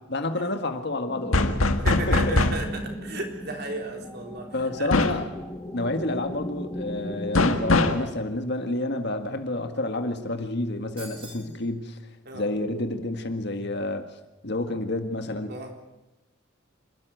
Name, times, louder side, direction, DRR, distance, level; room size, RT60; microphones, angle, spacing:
voice 1, 0.1-1.6 2.1-2.4 4.5-5.3 5.7-12.0 12.3-14.0 14.4-15.5, left 2 dB, 55° left, 7 dB, 1.8 m, -29 dB
sound 1, 1.1-8.0, left 1 dB, 15° left, 1.9 m, -37 dB
sound 2, 1.3-2.7 4.9-5.3 7.3-8.0, left 2 dB, 90° left, 1.8 m, -22 dB
voice 2, 1.8-4.9 12.3-12.5 15.5-15.7, right 2 dB, 50° right, 3 dB, 3.8 m, -34 dB
sound 3, 11.0-11.6, right 3 dB, 25° right, 5.1 m, -44 dB
26.5 x 13.0 x 9.2 m, 1.0 s
head